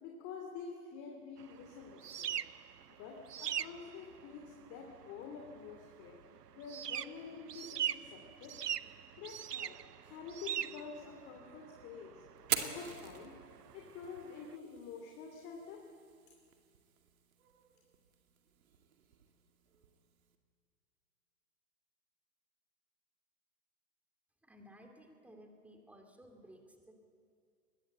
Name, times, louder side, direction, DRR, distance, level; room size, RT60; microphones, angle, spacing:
voice 1, 0.0-2.3 2.9-6.2 6.6-8.6 9.2-9.8 10.1-12.2 12.6-13.4 13.7-15.8, left 5 dB, 30° left, 2 dB, 2.6 m, -48 dB
sound 1, 1.4-14.5, right 10 dB, 90° right, 0.7 m, -43 dB
Fire, 12.4-20.3, right 9 dB, 60° right, 2.2 m, -45 dB
voice 2, 24.4-26.9, equal, 5° right, 3 dB, 2.3 m, -57 dB
22.0 x 19.5 x 8.1 m, 2.3 s
hypercardioid pair, 120°, 46 cm